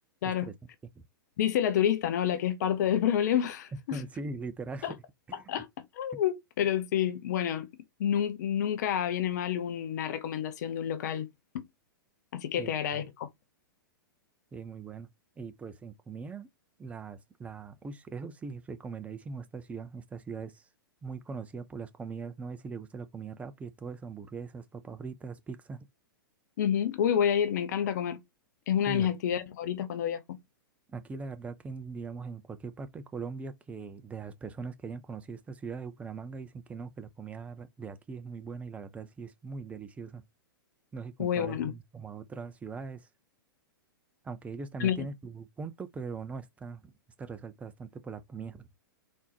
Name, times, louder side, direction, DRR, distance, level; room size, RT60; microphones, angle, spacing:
voice 1, 1.4-4.0 4.8-4.9 5.5-5.7 5.9-7.7 8.0-11.3 11.5-11.6 12.3-13.3 26.6-28.2 28.7-30.4 41.2-41.7 44.8-45.0, left 9 dB, 50° left, 0.7 m, -28 dB
voice 2, 3.7-5.0 5.3-5.4 6.1-6.2 12.6-13.1 14.5-15.1 15.4-16.5 16.8-20.6 21.0-25.8 28.9-29.1 30.9-40.2 40.9-43.1 44.2-46.9 47.2-48.7, right 4 dB, 10° right, 0.5 m, -41 dB
4.1 x 3.5 x 2.8 m
figure-of-eight pair, 105°, 12 cm